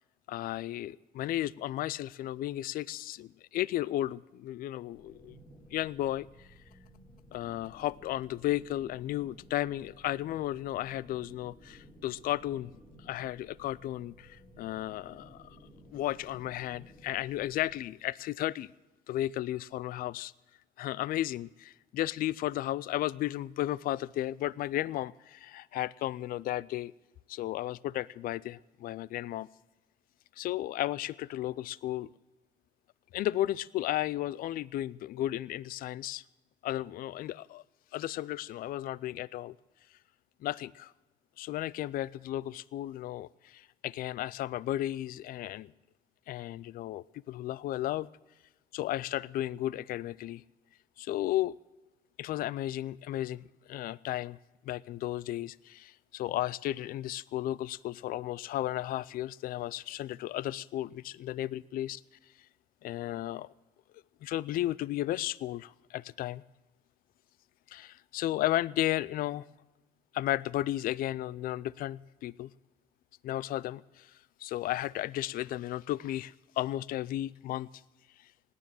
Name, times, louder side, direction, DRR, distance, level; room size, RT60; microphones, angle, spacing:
voice 1, 0.3-5.4 5.7-6.5 7.3-12.7 13.0-15.6 15.9-18.7 19.1-20.3 20.8-26.9 27.3-29.5 30.4-32.1 33.1-36.2 36.6-37.6 37.9-39.5 40.4-40.9 41.4-45.7 46.3-48.1 48.7-50.4 51.0-51.6 52.2-54.4 54.6-62.0 62.8-63.5 64.2-66.4 67.7-69.4 70.1-72.5 73.2-74.1 74.4-77.7, left 14 dB, 60° left, 23 dB, 0.4 m, -34 dB
sound 1, 4.9-17.8, equal, 20° left, 5.2 m, -56 dB
18.0 x 9.8 x 7.6 m, 1.1 s
cardioid pair, 110°, 17 cm